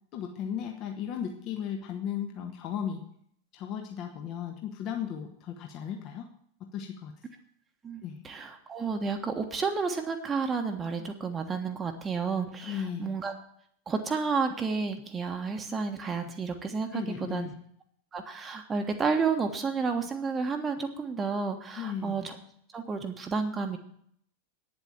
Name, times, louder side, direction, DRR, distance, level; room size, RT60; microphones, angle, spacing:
voice 1, 0.1-3.0 3.5-6.3 6.7-7.1 8.0-8.2 12.6-13.1 16.9-17.5 21.8-22.2, left 8 dB, 40° left, 3 dB, 1.4 m, -35 dB
voice 2, 7.8-13.3 13.9-17.5 18.1-22.4 22.7-23.8, right 5 dB, 20° right, 4 dB, 1.3 m, -31 dB
9.7 x 7.8 x 8.8 m, 0.65 s
figure-of-eight pair, 90°, 0 cm